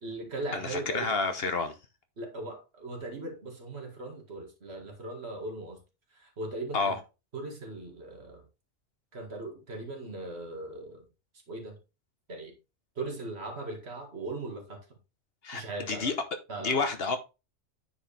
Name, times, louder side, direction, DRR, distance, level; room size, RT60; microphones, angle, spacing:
voice 1, 0.0-1.1 2.2-5.8 6.1-7.0 7.3-8.4 9.1-11.0 11.5-11.8 12.3-12.5 13.0-14.8 15.5-16.2 16.5-16.8, right 2 dB, 60° right, 2.2 m, -39 dB
voice 2, 0.5-1.7 6.7-7.0 15.4-15.6 15.9-16.1 16.6-17.2, left 4 dB, 55° left, 1.2 m, -29 dB
9.3 x 4.8 x 3.3 m
omnidirectional pair, 1.3 m